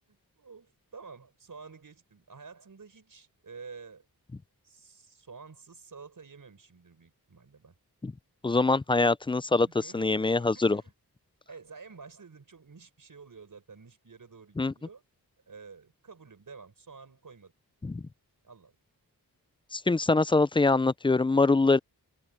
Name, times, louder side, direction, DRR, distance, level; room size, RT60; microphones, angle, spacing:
voice 1, 0.1-4.1 4.6-7.7 9.7-10.9 11.5-15.0 15.5-17.5 18.4-18.7, right 5 dB, 60° right, 5.6 m, -50 dB
voice 2, 8.4-9.7 9.9-10.8 14.6-14.7 17.8-18.0 19.7-21.8, left 3 dB, 15° left, 0.3 m, -24 dB
open air
wide cardioid pair, 75°, 37 cm